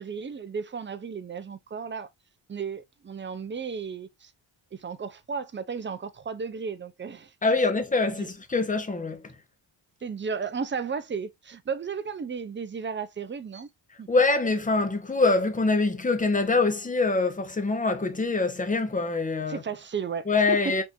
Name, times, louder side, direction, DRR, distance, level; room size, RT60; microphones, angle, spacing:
voice 1, 0.0-2.1 2.5-4.3 4.7-7.3 8.2-8.3 10.0-13.7 14.0-14.1 19.5-20.7, right 6 dB, 25° right, 0.4 m, -34 dB
voice 2, 7.4-9.3 14.1-19.6 20.3-20.8, left 3 dB, 15° left, 0.7 m, -24 dB
3.6 x 2.5 x 2.5 m
cardioid pair, 65°, 48 cm